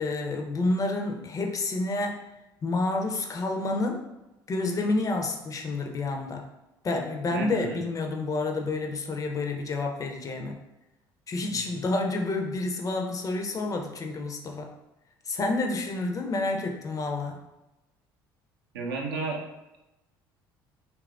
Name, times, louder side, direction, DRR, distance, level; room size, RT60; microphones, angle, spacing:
voice 1, 0.0-2.2 2.6-4.0 4.5-6.4 6.8-10.6 11.3-14.7 15.3-17.4, left 2 dB, 30° left, 3 dB, 0.4 m, -29 dB
voice 2, 7.3-7.8 11.5-11.6 18.7-19.4, right 4 dB, 75° right, 0 dB, 0.5 m, -32 dB
3.0 x 2.3 x 2.4 m, 0.96 s
figure-of-eight pair, 55°, 12 cm